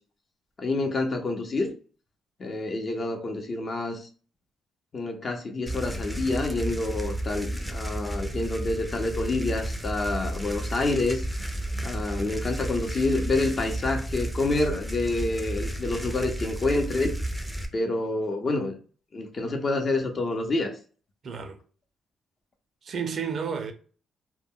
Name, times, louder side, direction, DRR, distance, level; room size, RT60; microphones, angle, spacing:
voice 1, 0.6-1.7 2.4-4.1 4.9-11.2 11.8-17.1 17.7-18.7 19.1-20.7, left 2 dB, 40° left, 0.7 m, -28 dB
sound 1, 5.7-17.7, right 1 dB, ahead, 0.5 m, -32 dB
voice 2, 21.2-21.6 22.8-23.7, right 6 dB, 55° right, 0.5 m, -31 dB
2.1 x 2.1 x 3.6 m
cardioid pair, 80°, 0 cm